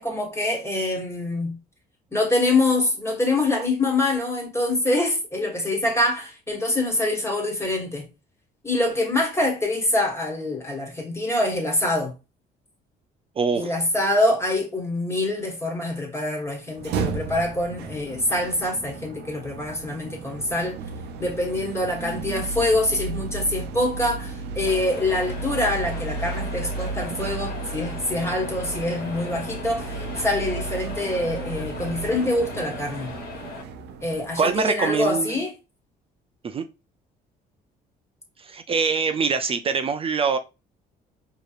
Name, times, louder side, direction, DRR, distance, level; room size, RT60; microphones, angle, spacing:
voice 1, 0.0-1.6 2.1-8.1 8.6-12.1 13.5-20.8 21.2-33.1 34.0-35.5, left 2 dB, 15° left, 1.3 m, -25 dB
voice 2, 13.4-13.7 34.4-35.3 36.4-36.7 38.4-40.4, right 5 dB, 35° right, 0.4 m, -24 dB
sound 1, 16.7-34.8, right 4 dB, 80° right, 0.6 m, -34 dB
sound 2, 24.6-33.6, left 4 dB, 65° left, 1.6 m, -39 dB
4.8 x 2.9 x 2.4 m
cardioid pair, 110°, 17 cm